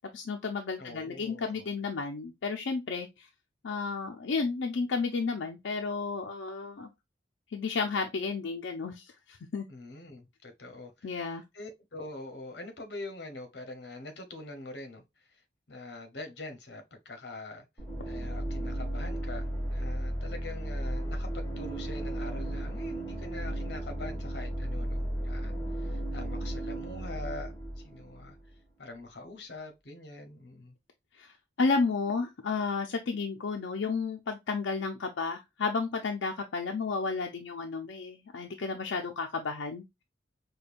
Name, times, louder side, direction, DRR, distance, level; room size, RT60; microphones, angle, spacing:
voice 1, 0.1-3.3 3.6-6.9 7.5-9.7 11.0-11.4 31.2-31.3 31.6-39.8, left 4 dB, 80° left, 0.5 m, -32 dB
voice 2, 0.8-1.6 9.7-15.3 15.7-17.6 18.0-28.4 28.8-30.7, left 2 dB, 65° left, 0.8 m, -44 dB
sound 1, 17.8-28.6, right 1 dB, 15° left, 2.1 m, -34 dB
5.1 x 2.2 x 2.4 m
head